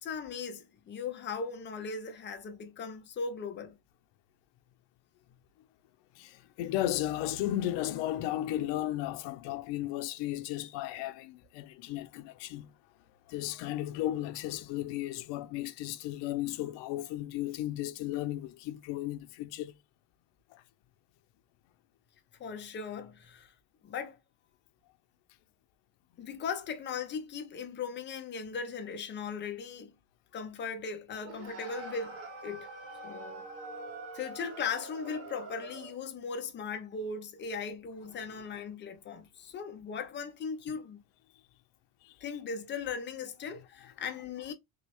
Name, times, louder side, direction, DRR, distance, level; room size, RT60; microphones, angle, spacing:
voice 1, 0.0-3.8 22.4-23.5 23.8-24.2 26.2-29.9 30.3-32.7 33.0-33.5 34.1-41.0 42.2-44.5, left 5 dB, 25° left, 0.5 m, -38 dB
voice 2, 6.2-12.7 13.3-19.7 42.0-42.1, left 14 dB, 85° left, 0.6 m, -34 dB
sound 1, 31.2-36.0, right 3 dB, 35° right, 0.9 m, -44 dB
3.4 x 2.1 x 3.4 m
cardioid pair, 175°, 42 cm